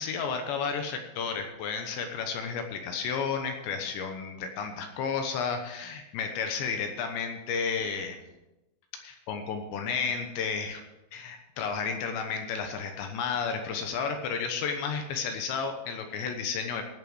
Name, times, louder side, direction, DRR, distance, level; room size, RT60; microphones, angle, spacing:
voice 1, 0.0-8.2 9.0-10.8 11.1-16.8, left 6 dB, 75° left, 5 dB, 3.1 m, -32 dB
16.0 x 7.4 x 6.2 m, 0.99 s
omnidirectional pair, 5.6 m